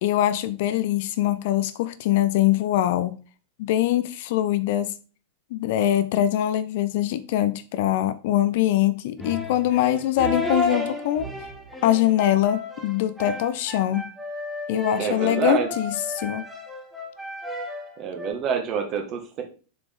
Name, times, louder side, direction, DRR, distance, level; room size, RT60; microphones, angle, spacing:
voice 1, 0.0-3.2 3.6-4.9 5.5-11.3 11.8-14.1 14.7-16.4, left 12 dB, 50° left, 0.5 m, -23 dB
sound 1, 9.2-18.3, left 2 dB, 5° right, 1.6 m, -33 dB
voice 2, 15.0-15.7 18.0-19.4, right 7 dB, 35° right, 1.6 m, -27 dB
6.8 x 5.0 x 3.6 m
figure-of-eight pair, 90°, 0 cm